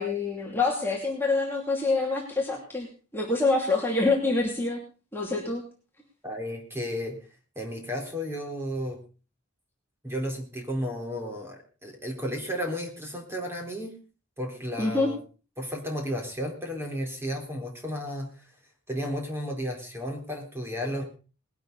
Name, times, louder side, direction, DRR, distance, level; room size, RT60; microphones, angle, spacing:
voice 1, 0.0-2.9 3.1-4.8 5.1-5.6 14.8-15.1, left 3 dB, 10° left, -2 dB, 2.7 m, -26 dB
voice 2, 6.2-7.2 7.6-9.0 10.0-14.0 14.4-15.2 15.6-18.4 18.9-21.0, equal, 10° right, 2 dB, 3.9 m, -33 dB
20.0 x 12.0 x 4.0 m, 0.36 s
head